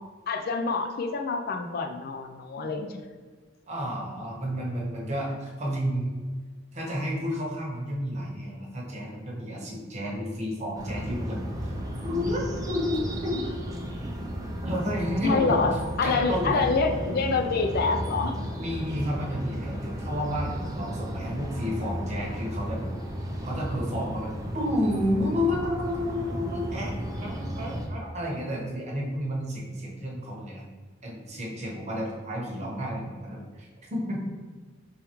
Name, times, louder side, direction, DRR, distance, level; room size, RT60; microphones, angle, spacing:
voice 1, 0.3-3.0 15.2-18.4, left 4 dB, 50° left, 5 dB, 0.4 m, -26 dB
voice 2, 3.7-6.1 6.7-11.7 12.0-13.0 13.2-13.4 14.6-15.6 16.0-16.7 18.6-22.9 23.4-30.6 31.0-34.2, equal, 35° right, -3 dB, 1.1 m, -31 dB
sound 1, 10.7-27.9, equal, 20° right, 0.5 m, -34 dB
4.7 x 3.5 x 3.0 m, 1.5 s
head